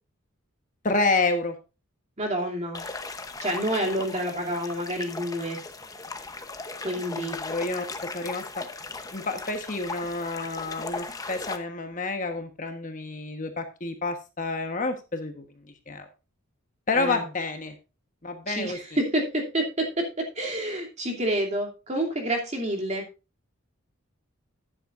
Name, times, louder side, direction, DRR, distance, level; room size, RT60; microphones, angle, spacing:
voice 1, 0.8-1.5 7.1-8.6 9.1-15.4 15.9-16.1 16.9-17.7 18.2-18.8, left 3 dB, 35° left, 6 dB, 1.2 m, -29 dB
voice 2, 2.2-2.8 3.4-5.6 6.8-7.4 16.9-17.2 18.5-23.1, right 1 dB, 30° right, 1 dB, 2.8 m, -28 dB
sound 1, 2.7-11.6, left 3 dB, 15° left, 0.8 m, -38 dB
12.5 x 10.0 x 2.5 m, 0.29 s
head